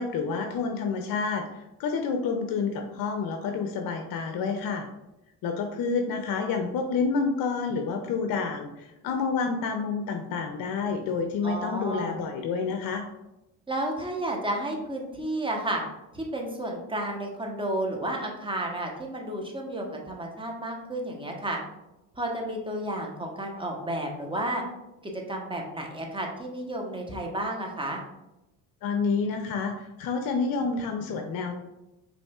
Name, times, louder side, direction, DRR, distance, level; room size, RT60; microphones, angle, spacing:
voice 1, 0.0-1.5 1.8-4.9 5.4-13.1 28.8-31.6, left 5 dB, 55° left, 5 dB, 0.6 m, -29 dB
voice 2, 11.4-12.2 13.7-15.8 16.1-21.6 22.2-24.6 25.0-28.0, right 1 dB, 10° right, 1 dB, 0.9 m, -32 dB
5.1 x 3.1 x 2.3 m, 0.93 s
supercardioid pair, 75°, 42 cm